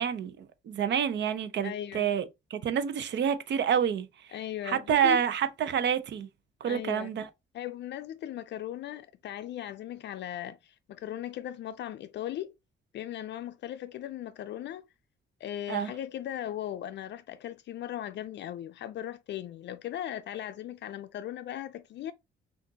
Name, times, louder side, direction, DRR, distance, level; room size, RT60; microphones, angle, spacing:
voice 1, 0.0-4.1 4.7-6.3 6.6-7.3 15.7-15.9, right 8 dB, 65° right, 0.7 m, -28 dB
voice 2, 1.6-2.1 4.3-5.2 6.6-7.1 7.5-12.5 12.9-14.8 15.4-22.1, left 11 dB, 65° left, 0.4 m, -38 dB
5.9 x 2.5 x 2.7 m
cardioid pair, 90°, 20 cm